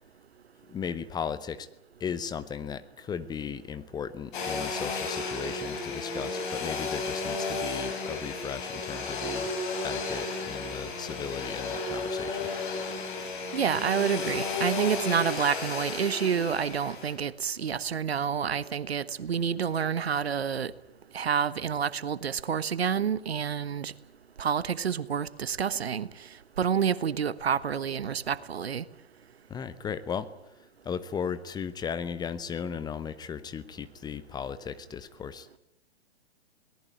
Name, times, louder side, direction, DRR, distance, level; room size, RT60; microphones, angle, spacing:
voice 1, 0.7-1.7 2.0-9.5 9.8-12.5 29.5-30.3 30.8-35.6, left 7 dB, 10° left, 13 dB, 0.9 m, -36 dB
Domestic sounds home sounds, 4.3-17.1, left 3 dB, 50° left, 7.3 m, -33 dB
voice 2, 13.5-20.7 21.1-23.9 24.4-26.1 26.6-28.8, right 7 dB, 70° right, 16 dB, 1.4 m, -28 dB
23.0 x 19.0 x 9.3 m, 0.84 s
figure-of-eight pair, 120°, 32 cm